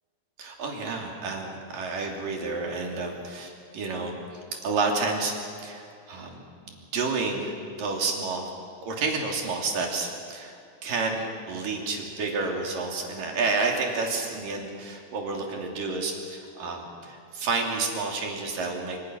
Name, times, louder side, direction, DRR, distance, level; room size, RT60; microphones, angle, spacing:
voice 1, 0.4-6.4 6.7-8.5 8.8-19.0, right 3 dB, 55° right, 1 dB, 4.4 m, -30 dB
26.5 x 25.0 x 6.4 m, 2.5 s
omnidirectional pair, 4.7 m